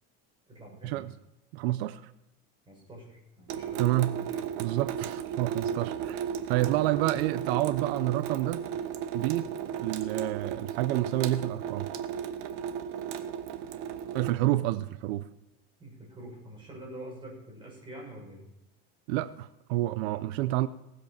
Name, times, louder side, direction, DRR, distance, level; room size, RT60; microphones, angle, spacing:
voice 1, 0.5-1.0 2.6-4.4 6.7-6.9 15.8-18.4, right 1 dB, 15° right, 6.1 m, -46 dB
voice 2, 1.5-2.1 3.8-4.1 4.6-8.6 9.1-9.5 9.8-11.9 14.1-15.3 19.1-20.7, right 16 dB, 85° right, 0.7 m, -29 dB
Water tap faucet / Sink (filling or washing) / Drip, 3.5-14.3, right 8 dB, 60° right, 1.3 m, -35 dB
19.0 x 8.1 x 5.9 m
cardioid pair, 155°, 31 cm